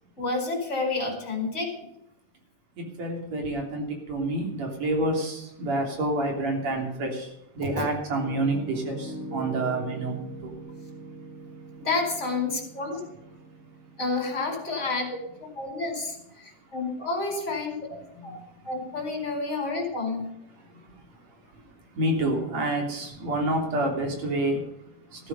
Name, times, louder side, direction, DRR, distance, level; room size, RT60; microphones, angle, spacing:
voice 1, 0.2-1.8 7.7-7.8 11.8-13.0 14.0-18.0 18.2-18.4 18.6-20.3, left 3 dB, 20° left, 2 dB, 4.9 m, -30 dB
voice 2, 2.8-10.5 18.1-18.6 20.6-25.3, right 1 dB, 55° right, 2 dB, 4.3 m, -29 dB
Piano, 8.2-16.1, right 2 dB, 20° right, 7.8 m, -42 dB
14.5 x 12.5 x 5.5 m, 0.85 s
omnidirectional pair, 3.6 m